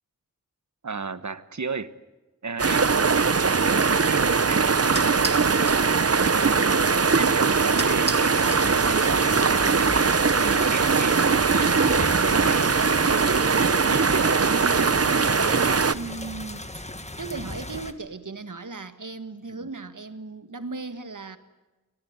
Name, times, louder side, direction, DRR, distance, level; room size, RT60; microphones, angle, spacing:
voice 1, 0.8-1.9 2.4-5.2 5.6-6.8 7.1-10.1 10.4-13.5 13.9-15.0 19.6-19.7, right 4 dB, 70° right, 14 dB, 1.2 m, -34 dB
sound 1, 2.6-15.9, right 5 dB, 50° right, 0.9 m, -21 dB
sound 2, 4.6-9.2, right 2 dB, 35° right, 2.2 m, -39 dB
sound 3, 8.3-17.9, left 1 dB, 20° left, 1.8 m, -37 dB
voice 2, 15.9-16.8 17.2-21.4, right 3 dB, 85° right, 10 dB, 1.7 m, -37 dB
25.5 x 18.0 x 9.6 m, 1.1 s
wide cardioid pair, 55°, 30 cm